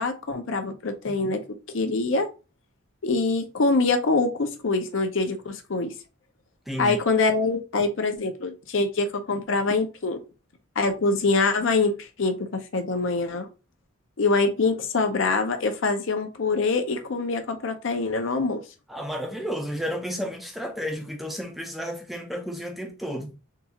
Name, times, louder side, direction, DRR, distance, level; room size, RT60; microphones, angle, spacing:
voice 1, 0.0-1.4 1.7-2.3 3.0-5.9 6.8-10.2 10.8-13.5 14.2-18.6, left 3 dB, 65° left, 0.6 m, -24 dB
voice 2, 6.7-7.0 18.9-23.3, equal, ahead, 0.4 m, -32 dB
3.7 x 2.4 x 2.8 m
head